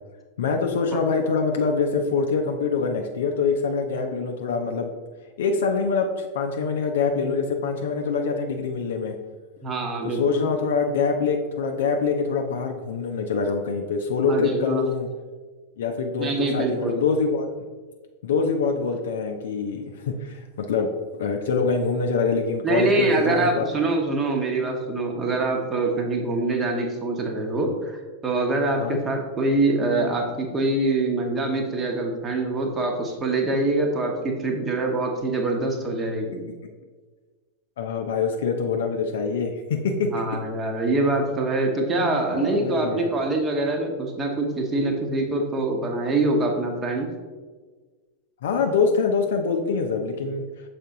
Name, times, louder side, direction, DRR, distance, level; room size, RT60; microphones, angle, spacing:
voice 1, 0.4-4.9 5.4-9.2 10.0-15.1 15.8-17.5 18.2-20.9 21.2-23.7 28.8-29.0 37.8-40.1 41.9-43.1 48.4-50.4, left 5 dB, 60° left, 4 dB, 0.5 m, -25 dB
voice 2, 9.6-10.4 14.3-14.8 16.2-17.0 22.6-27.9 28.2-36.4 40.1-47.1, right 2 dB, 20° right, 2 dB, 1.0 m, -24 dB
6.6 x 4.3 x 3.7 m, 1.4 s
figure-of-eight pair, 90°, 0 cm